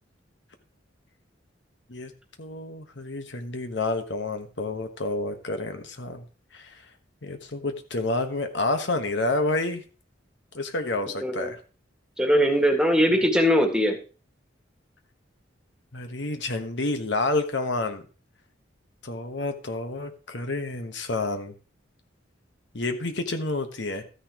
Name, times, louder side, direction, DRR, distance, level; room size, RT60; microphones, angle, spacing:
voice 1, 2.4-6.2 6.5-6.7 7.2-9.8 10.5-11.6 15.9-18.0 19.0-21.5 22.7-24.0, left 2 dB, 65° left, 7 dB, 1.3 m, -29 dB
voice 2, 12.2-14.0, equal, 5° right, 3 dB, 1.9 m, -21 dB
13.5 x 9.9 x 3.0 m, 0.35 s
head